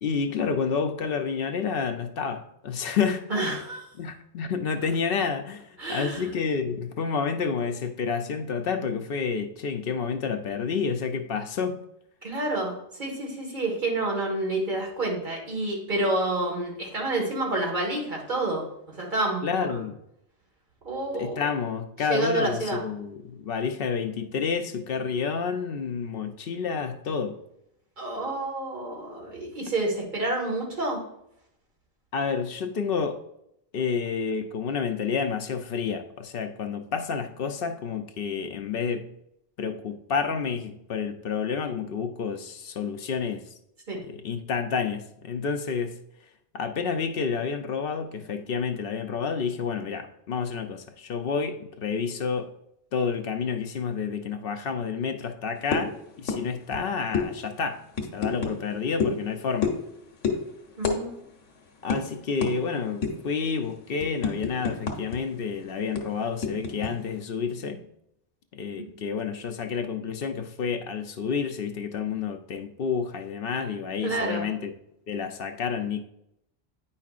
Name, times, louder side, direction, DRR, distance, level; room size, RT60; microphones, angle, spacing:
voice 1, 0.0-3.3 4.0-11.8 19.4-20.0 21.2-27.4 32.1-33.2 33.7-39.1 39.6-43.5 44.1-46.0 46.5-52.5 52.9-57.8 58.1-59.7 61.8-67.8 68.5-74.7 75.1-76.0, left 6 dB, 60° left, 7 dB, 0.7 m, -29 dB
voice 2, 3.3-3.9 5.8-6.3 12.2-18.7 19.0-19.8 20.8-21.5 22.1-22.8 28.0-31.0 43.9-44.0 60.8-61.3 68.7-68.9 74.0-74.5, right 2 dB, 40° right, -2 dB, 1.8 m, -29 dB
sound 1, 55.7-55.9 56.3-56.4 56.7-56.8 57.1-57.3 57.9-58.5 59.0-59.2 59.6-59.9 60.2-60.4 60.8-61.0 61.3-61.4 61.9-62.0 62.4-62.5 63.0-63.3 63.7-65.2 65.4-65.5 66.0-66.9, left 5 dB, 85° left, 1.3 m, -27 dB
9.2 x 5.4 x 2.4 m, 0.78 s
omnidirectional pair, 1.2 m